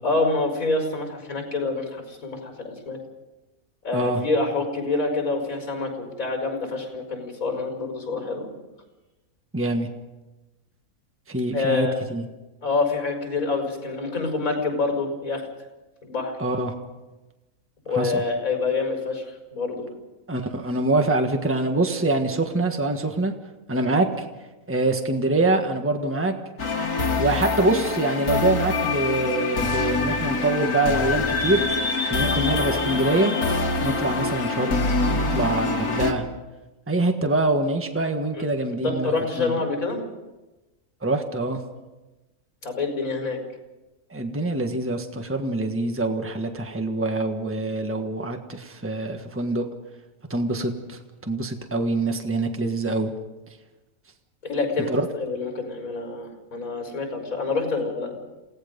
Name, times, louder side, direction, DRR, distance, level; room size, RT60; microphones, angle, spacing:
voice 1, 0.0-3.0 3.8-8.5 11.5-12.0 12.6-15.4 16.0-16.4 17.9-19.3 19.5-19.9 38.3-40.0 42.6-43.4 54.4-54.9 55.2-58.1, left 3 dB, 65° left, 3 dB, 5.8 m, -26 dB
voice 2, 9.5-9.9 11.3-12.2 16.4-16.7 17.9-18.2 20.3-23.3 23.7-24.2 24.7-26.3 27.2-31.6 32.0-33.3 33.8-34.8 35.1-36.2 36.9-39.1 39.4-39.5 41.0-41.6 44.1-49.7 50.3-53.1 54.9-55.1, right 2 dB, 10° right, 4 dB, 1.4 m, -24 dB
sound 1, 26.6-36.1, left 3 dB, 85° left, 2.2 m, -25 dB
28.0 x 17.5 x 5.3 m, 1.1 s
omnidirectional pair, 1.5 m